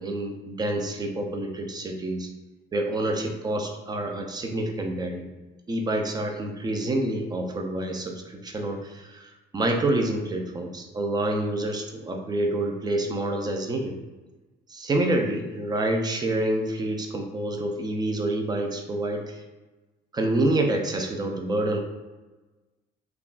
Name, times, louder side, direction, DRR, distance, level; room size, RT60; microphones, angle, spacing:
voice 1, 0.0-2.3 2.7-5.3 5.7-14.0 14.7-19.4 20.1-21.8, right 1 dB, 25° right, 3 dB, 0.4 m, -27 dB
3.4 x 2.4 x 2.4 m, 1.2 s
cardioid pair, 110°, 17 cm